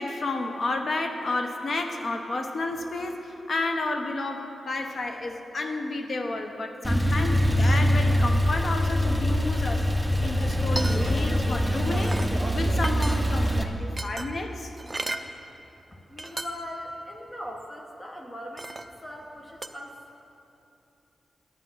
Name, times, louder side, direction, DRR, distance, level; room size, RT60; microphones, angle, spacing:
voice 1, 0.0-9.8 10.2-12.2 12.5-14.7, left 2 dB, 60° left, 4 dB, 1.0 m, -31 dB
Male speech man speaking / Car / Idling, 6.8-13.6, equal, ahead, 0.9 m, -24 dB
sound 1, 10.8-11.4 11.7-12.3 12.8-13.5 14.0-15.3 15.9-16.0 16.2-16.7 17.1-17.3 18.6-19.0 19.6-19.7, right 2 dB, 25° right, 0.5 m, -35 dB
voice 2, 16.1-18.7 19.0-20.0, left 1 dB, 25° left, 0 dB, 1.2 m, -39 dB
12.0 x 8.9 x 5.7 m, 2.9 s
cardioid pair, 80°, 0 cm